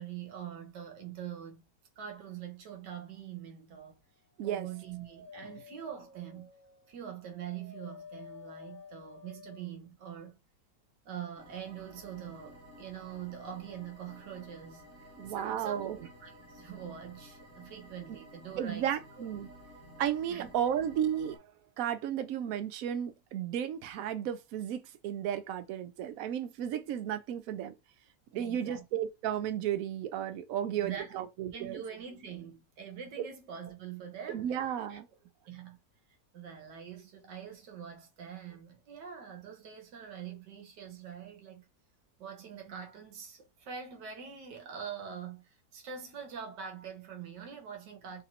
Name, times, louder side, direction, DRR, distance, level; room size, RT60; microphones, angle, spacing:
voice 1, 0.0-1.7 2.0-4.0 4.4-6.5 6.9-10.4 11.1-15.9 16.2-18.9 19.2-19.6 20.3-20.8 28.3-28.8 30.8-31.2 31.5-35.0 35.5-35.8 36.3-41.6 42.2-48.2, right 8 dB, 85° right, 1.6 m, -44 dB
Dog, 4.2-9.8, left 6 dB, 25° left, 0.5 m, -52 dB
sound 1, 11.4-21.4, equal, 10° right, 0.7 m, -53 dB
voice 2, 15.2-16.0 18.6-19.5 20.0-21.4 21.8-27.8 28.3-31.8 33.2-33.3 34.3-35.1, right 10 dB, 70° right, 0.9 m, -33 dB
4.1 x 2.7 x 2.8 m
omnidirectional pair, 1.8 m